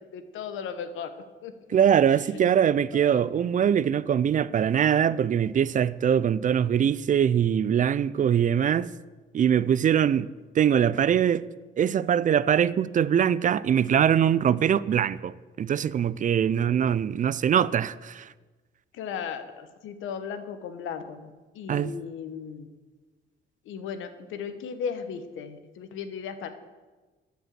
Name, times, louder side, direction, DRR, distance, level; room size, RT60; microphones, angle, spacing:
voice 1, 0.1-1.2 1.4-1.5 2.3-2.4 2.9-3.3 18.9-22.7 23.6-26.5, left 7 dB, 85° left, 1.0 m, -36 dB
voice 2, 1.7-8.9 9.3-11.4 11.8-18.3 21.7-21.9, right 9 dB, 40° right, 0.4 m, -23 dB
12.5 x 5.3 x 7.5 m
cardioid pair, 90°, 20 cm